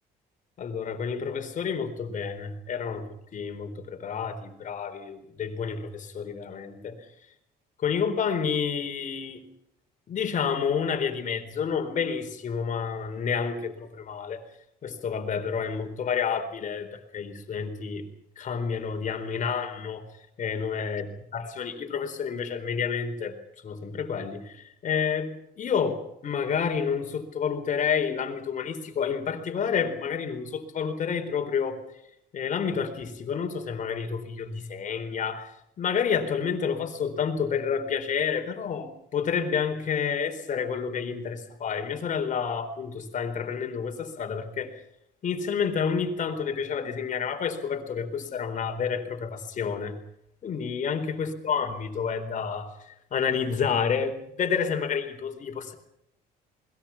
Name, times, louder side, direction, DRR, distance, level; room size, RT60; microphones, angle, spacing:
voice 1, 0.6-3.1 3.3-7.0 7.8-9.4 10.1-14.4 14.8-18.1 18.4-20.0 20.4-21.1 21.3-23.4 23.6-31.8 32.3-35.5 35.8-44.8 45.2-50.0 50.4-55.8, left 6 dB, 50° left, 6 dB, 4.2 m, -29 dB
28.5 x 21.5 x 5.9 m, 0.77 s
cardioid pair, 110°, 17 cm